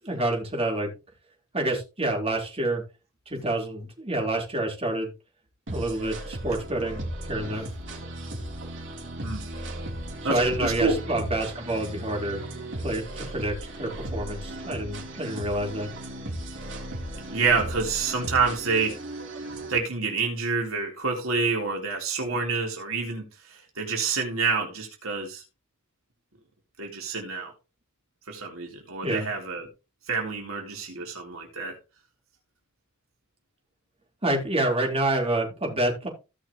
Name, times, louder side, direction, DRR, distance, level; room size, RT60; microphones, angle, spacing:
voice 1, 0.0-0.9 1.5-2.8 3.3-5.1 5.7-7.7 10.2-15.9 29.0-29.3 34.2-36.1, right 1 dB, 30° right, 4.1 m, -28 dB
sound 1, 5.7-19.8, right 1 dB, 65° right, 3.6 m, -36 dB
voice 2, 10.2-11.0 17.3-19.0 19.4-23.3 23.5-25.4 26.8-27.5 28.3-29.6 30.1-31.7, right 4 dB, 80° right, 3.8 m, -28 dB
17.0 x 6.3 x 3.1 m
head